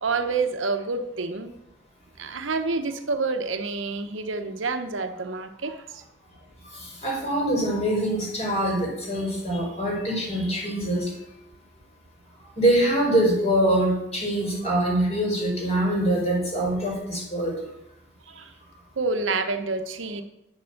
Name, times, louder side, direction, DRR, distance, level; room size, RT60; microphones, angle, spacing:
voice 1, 0.0-1.5 2.2-6.0 18.3-18.5 19.0-20.2, right 3 dB, 85° right, 8 dB, 0.9 m, -28 dB
voice 2, 6.7-11.1 12.6-17.6, right 1 dB, 35° left, -2 dB, 4.3 m, -24 dB
9.7 x 7.1 x 6.5 m, 0.82 s
head